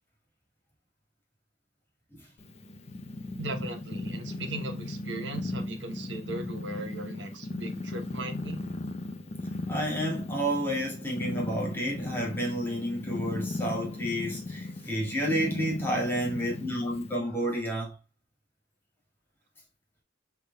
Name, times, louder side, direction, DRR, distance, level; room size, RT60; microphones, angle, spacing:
Purr, 2.4-17.2, left 2 dB, 35° left, 0.6 m, -37 dB
voice 1, 3.4-8.6, right 2 dB, 70° right, 1.0 m, -38 dB
voice 2, 9.7-17.9, equal, 10° left, 2.0 m, -30 dB
6.2 x 3.5 x 2.2 m
head